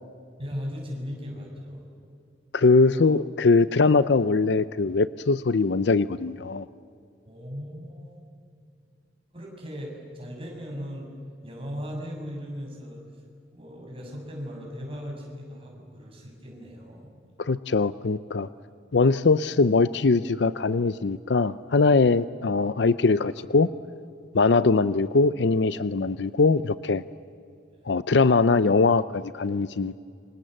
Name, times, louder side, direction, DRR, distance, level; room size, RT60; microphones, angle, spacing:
voice 1, 0.4-1.8 2.9-3.1 7.3-8.2 9.3-11.1 11.4-13.2 13.5-17.1 27.7-27.9, equal, 30° right, 0 dB, 6.7 m, -38 dB
voice 2, 2.5-6.7 17.4-18.5 18.9-23.7 24.3-27.0 27.9-30.0, left 3 dB, 70° left, 15 dB, 0.6 m, -21 dB
28.0 x 26.0 x 7.8 m, 2.4 s
head